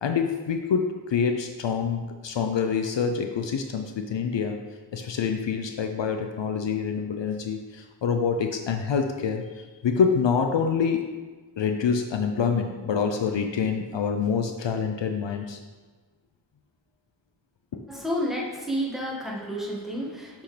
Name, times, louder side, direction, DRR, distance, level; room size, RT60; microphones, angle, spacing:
voice 1, 0.0-4.6 4.9-11.0 11.6-15.6 17.7-17.9, left 6 dB, 70° left, 5 dB, 0.6 m, -26 dB
voice 2, 17.9-20.4, equal, ahead, -5 dB, 1.6 m, -30 dB
6.0 x 5.7 x 3.3 m, 1.3 s
wide cardioid pair, 50°, 46 cm